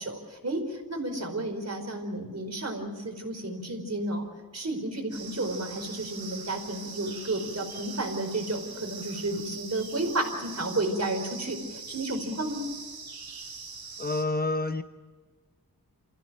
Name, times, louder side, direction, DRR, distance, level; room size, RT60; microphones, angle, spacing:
voice 1, 0.0-4.2 4.5-12.6, right 2 dB, 45° right, 4 dB, 4.9 m, -32 dB
sound 1, 5.1-14.2, right 4 dB, 85° right, 3.2 m, -42 dB
voice 2, 14.0-14.8, left 2 dB, 25° left, 8 dB, 1.0 m, -28 dB
28.5 x 16.0 x 7.6 m, 1.4 s
wide cardioid pair, 90°, 36 cm